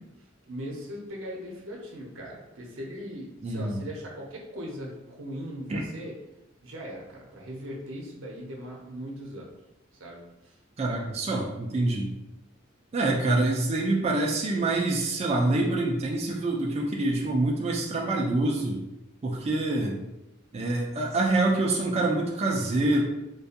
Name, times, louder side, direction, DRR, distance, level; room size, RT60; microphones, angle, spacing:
voice 1, 0.5-6.2 6.6-9.5 10.0-10.6, equal, 75° right, -2 dB, 0.7 m, -39 dB
voice 2, 3.4-3.8 5.7-5.8 10.8-12.1 12.9-18.8 19.2-20.0 20.5-23.0, right 2 dB, 30° right, -1 dB, 0.3 m, -26 dB
2.6 x 2.3 x 2.5 m, 0.95 s
head